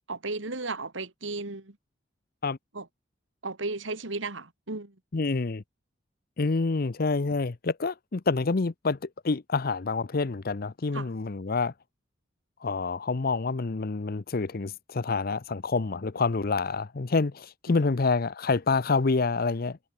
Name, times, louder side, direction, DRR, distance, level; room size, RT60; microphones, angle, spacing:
voice 1, 0.1-1.8 2.7-2.9 3.4-5.0 10.9-11.1 17.7-18.0, right 3 dB, 80° right, 2.3 m, -35 dB
voice 2, 5.1-5.6 6.4-9.0 9.2-11.7 12.6-19.8, left 4 dB, 50° left, 0.7 m, -27 dB
head